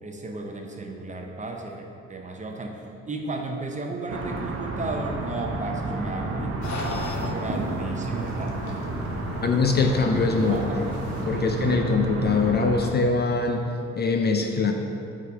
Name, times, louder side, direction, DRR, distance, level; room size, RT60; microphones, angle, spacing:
voice 1, 0.0-8.9 10.5-11.0 11.3-11.5, right 2 dB, 25° right, 2 dB, 0.7 m, -34 dB
sound 1, 4.1-12.9, right 2 dB, 45° right, 0.9 m, -31 dB
sound 2, 6.6-11.7, left 2 dB, 70° left, 1.0 m, -36 dB
voice 2, 9.4-10.9 11.3-14.7, left 4 dB, 35° left, 4 dB, 0.4 m, -23 dB
5.7 x 3.9 x 4.6 m, 2.8 s
cardioid pair, 90°, 30 cm